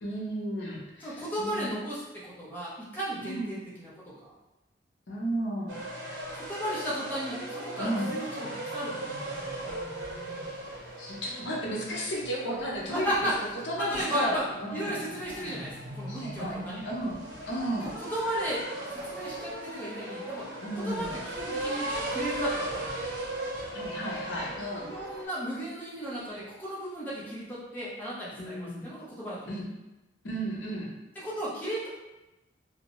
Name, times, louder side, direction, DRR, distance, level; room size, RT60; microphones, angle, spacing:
voice 1, 0.0-1.7 3.2-3.5 5.1-5.8 7.8-8.1 11.0-13.3 13.6-15.0 16.1-16.6 16.9-17.1 17.5-17.9 20.6-21.1 23.7-24.9 28.4-28.8 29.5-29.7 30.2-30.9, right 1 dB, 75° left, -3 dB, 0.6 m, -33 dB
voice 2, 1.0-3.9 4.2-4.3 6.5-8.5 8.7-9.6 12.9-14.4 14.7-16.9 17.8-18.6 18.9-20.5 20.8-21.9 22.1-23.2 24.8-29.5 31.2-31.9, equal, 10° left, -8 dB, 0.6 m, -35 dB
sound 1, 5.7-25.2, right 1 dB, 85° right, 0.6 m, -38 dB
2.6 x 2.1 x 2.9 m, 1.0 s
head